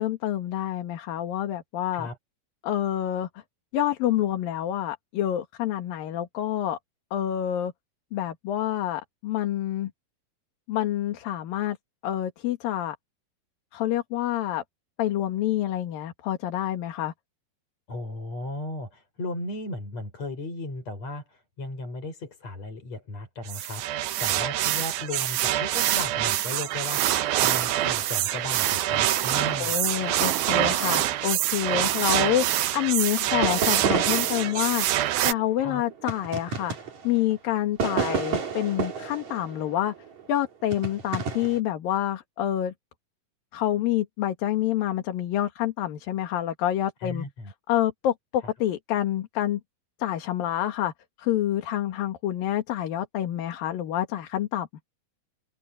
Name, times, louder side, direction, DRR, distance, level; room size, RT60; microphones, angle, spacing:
voice 1, 0.0-2.1 2.6-3.3 3.7-6.8 7.1-7.7 8.1-9.9 10.7-11.8 12.0-13.0 13.7-14.6 15.0-17.1 29.6-32.5 32.7-34.9 35.2-36.8 37.0-39.9 40.3-42.7 43.5-47.2 47.7-49.6 50.0-50.9 51.2-54.7, left 12 dB, 70° left, 3.4 m, -27 dB
voice 2, 17.9-29.7 35.6-35.8 47.0-47.5, left 2 dB, 45° left, 8.0 m, -36 dB
sound 1, 23.5-35.3, right 13 dB, 85° right, 2.9 m, -25 dB
sound 2, 33.4-37.3 37.8-40.2 40.7-41.6, right 5 dB, 50° right, 4.2 m, -30 dB
open air
omnidirectional pair, 4.3 m